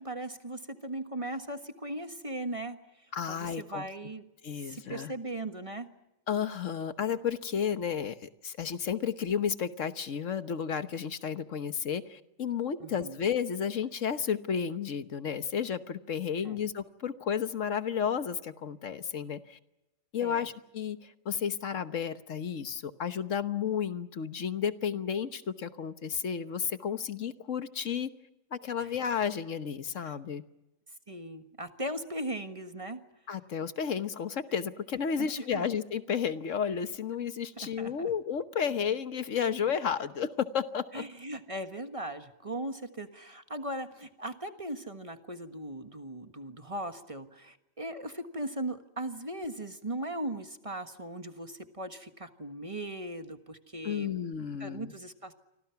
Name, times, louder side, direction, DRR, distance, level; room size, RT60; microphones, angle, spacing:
voice 1, 0.0-4.2 4.6-5.9 12.8-13.2 16.4-16.6 20.2-20.5 28.8-29.0 30.0-30.1 31.1-33.0 35.2-35.6 37.6-38.1 40.9-54.1 54.4-55.3, right 1 dB, 25° right, 8 dB, 1.5 m, -38 dB
voice 2, 3.1-3.9 4.4-5.1 6.3-19.6 20.1-28.1 28.5-30.4 33.3-41.0 53.8-54.9, left 7 dB, 70° left, 11 dB, 1.4 m, -32 dB
29.0 x 25.0 x 5.9 m, 0.95 s
omnidirectional pair, 1.4 m